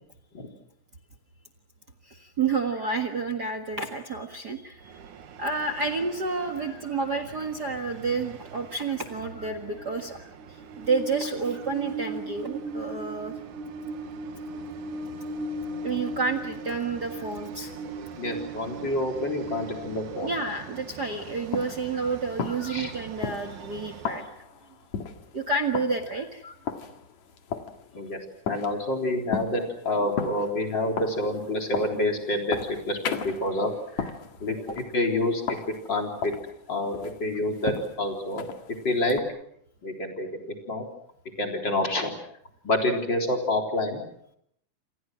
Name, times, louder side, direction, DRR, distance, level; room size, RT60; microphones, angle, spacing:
voice 1, 2.1-4.9 5.4-10.2 10.5-13.3 15.8-17.7 20.2-24.3 25.3-26.4 30.0-30.1, right 4 dB, 40° right, 9 dB, 1.9 m, -30 dB
Train, 4.8-24.3, right 2 dB, 80° right, 3.2 m, -39 dB
voice 2, 18.2-20.3 22.6-22.9 26.4-26.5 27.9-28.2 28.5-34.0 34.4-35.6 35.9-36.3 36.7-38.5 38.8-39.2 39.8-40.8 41.4-42.1 42.6-44.0, left 1 dB, 35° left, 3 dB, 4.4 m, -28 dB
sound 1, 21.0-39.2, left 6 dB, 70° left, 3.1 m, -37 dB
28.5 x 27.5 x 6.2 m, 0.72 s
omnidirectional pair, 3.4 m